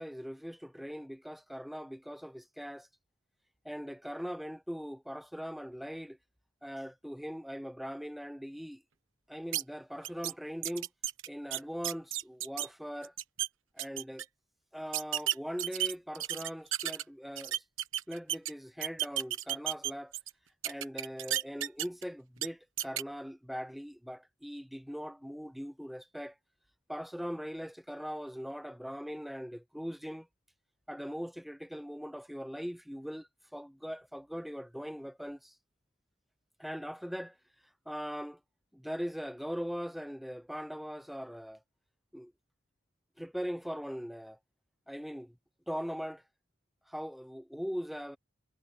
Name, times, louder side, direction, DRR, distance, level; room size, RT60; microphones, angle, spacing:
voice 1, 0.0-2.9 3.6-6.2 6.6-8.8 9.3-10.9 11.3-13.1 13.7-14.3 14.7-17.6 18.1-20.1 20.6-26.4 26.9-30.3 30.9-35.5 36.6-37.4 37.9-38.4 38.7-41.6 42.1-42.3 43.2-44.4 44.9-45.3 45.7-46.2 46.9-48.2, equal, ahead, 0.7 m, -40 dB
sound 1, 9.5-9.6 10.0-10.3 10.6-12.7 13.0-13.5 13.8-14.2 14.9-17.0 17.4-18.5 18.8-20.3 20.6-22.0 22.4-22.5 22.8-23.0, right 12 dB, 85° right, 1.2 m, -33 dB
head